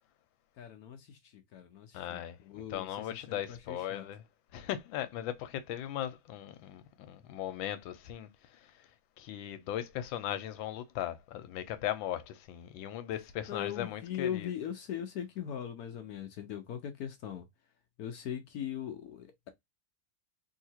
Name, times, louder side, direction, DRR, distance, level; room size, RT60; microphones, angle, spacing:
voice 1, 0.6-4.0 13.5-17.4 18.0-19.5, left 9 dB, 70° left, 0.9 m, -40 dB
voice 2, 1.9-2.4 2.7-4.2 4.5-8.6 9.2-14.5, left 11 dB, 90° left, 1.4 m, -38 dB
3.6 x 2.8 x 2.8 m
omnidirectional pair, 2.1 m